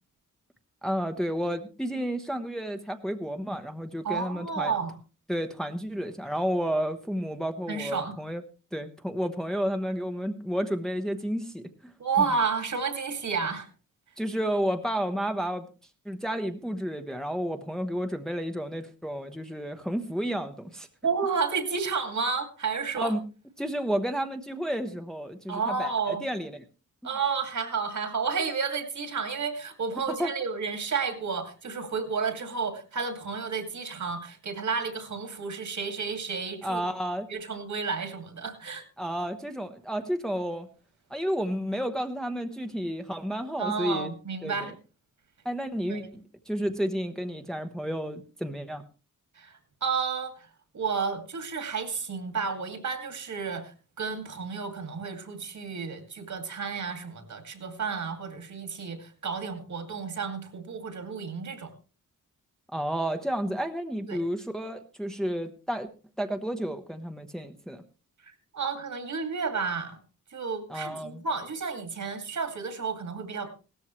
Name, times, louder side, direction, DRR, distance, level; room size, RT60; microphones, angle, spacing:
voice 1, 0.8-4.7 5.3-8.4 8.7-11.9 12.2-12.3 14.2-15.7 16.0-20.9 23.0-23.2 23.6-26.6 30.2-30.3 36.6-37.3 39.0-40.7 41.1-44.1 44.4-44.7 45.4-48.8 62.7-65.9 66.2-67.8 70.7-71.2, equal, ahead, 5 dB, 1.0 m, -31 dB
voice 2, 4.0-4.9 7.7-8.1 12.0-13.7 21.0-23.1 25.5-26.2 27.0-36.9 37.3-38.8 43.6-44.7 45.9-46.1 49.3-50.5 50.7-61.7 64.1-64.2 68.2-70.0 70.3-73.5, right 5 dB, 65° right, 8 dB, 2.4 m, -31 dB
16.5 x 13.5 x 3.2 m, 0.34 s
cardioid pair, 90°, 32 cm